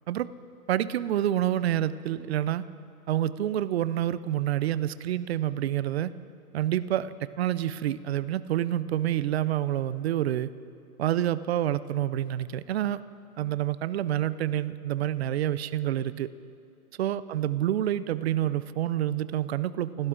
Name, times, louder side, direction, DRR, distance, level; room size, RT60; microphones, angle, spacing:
voice 1, 0.7-2.6 3.1-6.1 6.5-10.5 11.0-13.0 13.4-16.3 17.0-20.1, right 12 dB, 45° right, 16 dB, 0.5 m, -28 dB
27.0 x 12.5 x 3.7 m, 2.5 s
hypercardioid pair, 150°, 46 cm